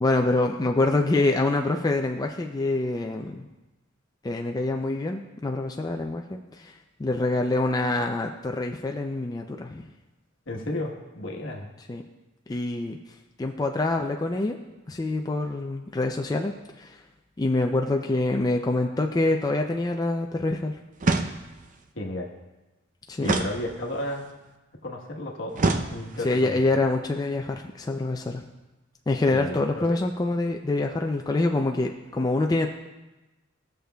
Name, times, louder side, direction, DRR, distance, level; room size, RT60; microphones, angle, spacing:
voice 1, 0.0-3.5 4.2-6.7 7.0-9.9 11.9-12.0 12.5-13.0 13.4-14.6 14.9-16.5 16.8-17.0 17.4-20.7 23.1-23.3 26.2-28.4 29.1-32.7, left 2 dB, 20° left, 3 dB, 0.4 m, -25 dB
voice 2, 10.5-11.7 21.9-22.3 23.2-24.3 24.8-26.6 29.3-29.9, left 1 dB, 70° left, 1 dB, 1.2 m, -33 dB
sound 1, 21.0-21.7 23.2-24.2 25.6-26.4, right 3 dB, 40° right, 0.5 m, -27 dB
16.5 x 6.6 x 2.3 m, 1.1 s
head